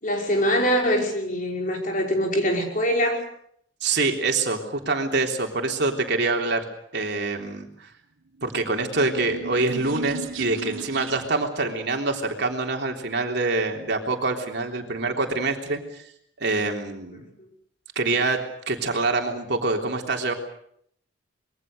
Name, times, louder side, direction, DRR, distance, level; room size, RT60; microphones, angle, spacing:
voice 1, 0.0-3.3, equal, 40° left, 1 dB, 5.5 m, -23 dB
voice 2, 3.8-6.6 6.9-7.9 8.4-16.1 16.4-17.2 18.0-18.4 18.7-20.3, right 3 dB, 55° right, 2 dB, 3.5 m, -25 dB
sound 1, 8.4-11.5, right 3 dB, 90° right, 1.6 m, -36 dB
25.5 x 22.5 x 6.8 m, 0.69 s
head